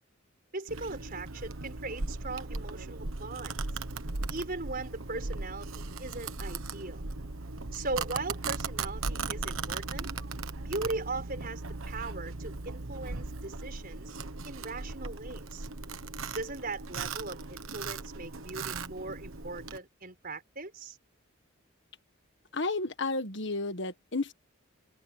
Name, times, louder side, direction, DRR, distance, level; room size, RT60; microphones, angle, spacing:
voice 1, 0.5-3.6 4.3-7.0 7.7-10.1 10.6-14.2 14.4-15.7 16.3-21.0, right 2 dB, 45° right, 4.8 m, -39 dB
Domestic sounds home sounds, 0.7-19.8, right 3 dB, 85° right, 1.3 m, -38 dB
voice 2, 22.5-24.3, left 3 dB, 60° left, 1.6 m, -32 dB
open air
head